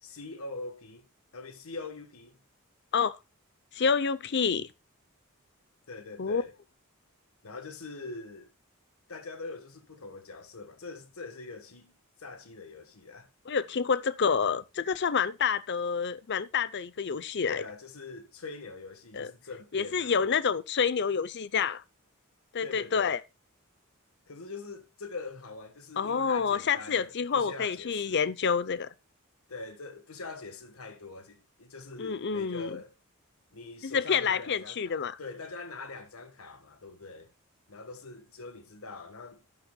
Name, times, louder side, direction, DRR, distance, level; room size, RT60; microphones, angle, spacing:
voice 1, 0.0-1.1 1.3-2.4 5.9-6.5 7.4-8.5 9.1-11.9 12.2-13.3 17.5-20.2 22.6-23.2 24.3-28.3 29.5-32.9 33.5-37.3 37.7-39.4, left 3 dB, 70° left, 1.4 m, -43 dB
voice 2, 3.7-4.7 6.2-6.4 13.5-17.6 19.1-19.3 19.7-21.8 22.5-23.2 26.0-28.9 32.0-32.8 33.8-35.2, left 6 dB, 50° left, 0.6 m, -28 dB
12.0 x 8.9 x 2.2 m
head